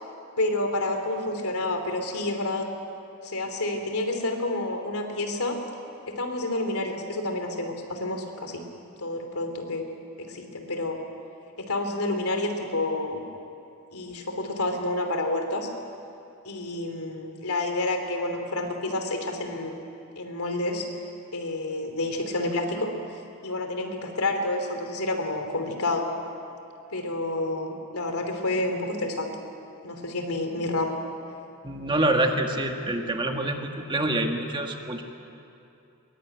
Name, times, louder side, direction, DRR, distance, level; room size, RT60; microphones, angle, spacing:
voice 1, 0.4-2.7 3.2-5.6 6.1-8.6 9.0-9.8 10.2-11.0 11.6-13.2 13.9-15.7 16.4-19.8 20.2-20.9 21.3-22.9 23.4-26.1 26.9-29.3 29.8-30.9, left 2 dB, 75° left, 4 dB, 3.2 m, -29 dB
voice 2, 31.6-35.0, right 1 dB, 20° right, 3 dB, 1.8 m, -26 dB
22.5 x 22.0 x 9.3 m, 2.7 s
head